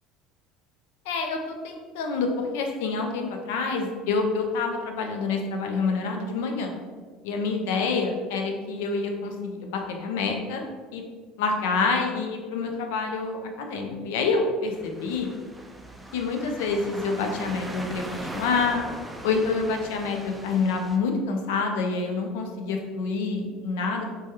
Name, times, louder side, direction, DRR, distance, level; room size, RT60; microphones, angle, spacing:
voice 1, 1.1-6.7 7.2-11.0 11.4-15.3 16.1-18.9 19.2-24.0, left 4 dB, 85° left, 3 dB, 0.4 m, -27 dB
sound 1, 14.7-21.0, right 1 dB, 10° right, 0.3 m, -39 dB
3.3 x 2.2 x 2.8 m, 1.5 s
supercardioid pair, 95°, 0 cm